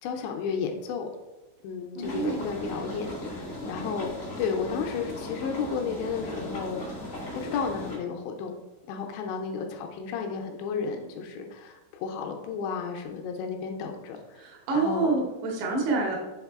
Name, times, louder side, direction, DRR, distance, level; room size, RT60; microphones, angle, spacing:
voice 1, 0.0-1.1 1.6-6.9 7.4-8.6 8.9-14.5 14.7-15.2, left 5 dB, 80° left, 3 dB, 2.7 m, -33 dB
sound 1, 2.0-8.0, left 1 dB, 50° left, 0.9 m, -37 dB
voice 2, 2.0-2.6 14.4-16.2, right 3 dB, 75° right, -1 dB, 3.4 m, -27 dB
7.2 x 3.7 x 3.5 m, 1.1 s
omnidirectional pair, 5.2 m